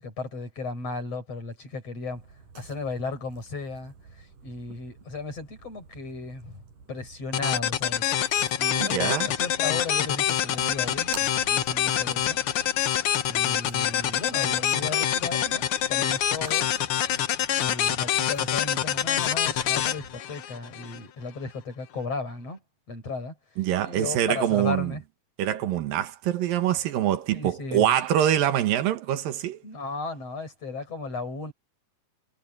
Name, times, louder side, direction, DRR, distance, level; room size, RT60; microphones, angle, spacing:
voice 1, 0.0-2.2 2.6-6.6 6.9-8.1 8.6-12.4 13.3-16.8 17.6-22.6 22.9-23.3 23.8-25.0 27.3-28.0 29.6-31.5, left 3 dB, 45° left, 7.6 m, -35 dB
sound 1, 2.1-20.2, right 5 dB, 70° right, 6.6 m, -50 dB
sound 2, 7.3-21.0, left 10 dB, 75° left, 1.3 m, -26 dB
voice 2, 8.8-9.3 23.6-24.9 25.4-29.6, right 11 dB, 85° right, 3.1 m, -24 dB
omnidirectional pair, 3.9 m